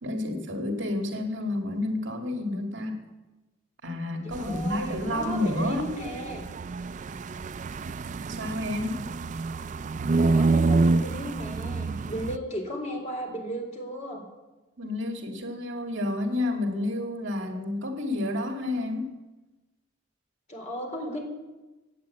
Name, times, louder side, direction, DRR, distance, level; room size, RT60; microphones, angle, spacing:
voice 1, 0.0-3.0 3.8-5.9 8.3-9.0 14.8-19.1, left 2 dB, 70° right, 3 dB, 2.1 m, -30 dB
voice 2, 4.2-6.4 10.3-14.2 20.5-21.2, equal, 40° left, 1 dB, 3.9 m, -35 dB
Trompetista Centro Historico, 4.3-12.4, right 3 dB, 40° right, 0.4 m, -28 dB
17.0 x 9.3 x 8.5 m, 1.1 s
head